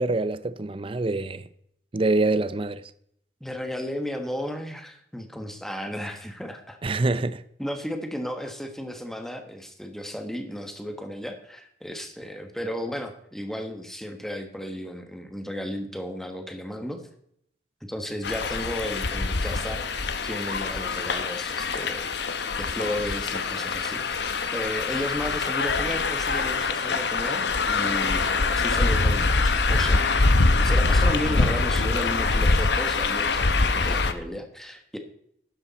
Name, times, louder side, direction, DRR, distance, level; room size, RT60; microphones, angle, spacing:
voice 1, 0.0-1.4 1.9-2.9 6.8-7.4, right 2 dB, 30° right, 0.5 m, -25 dB
voice 2, 3.4-6.8 7.6-17.0 17.8-22.1 22.6-28.3 28.6-30.0 30.6-35.0, equal, ahead, 1.3 m, -34 dB
sound 1, 18.2-34.1, left 3 dB, 70° left, 0.9 m, -24 dB
12.0 x 10.0 x 4.1 m
head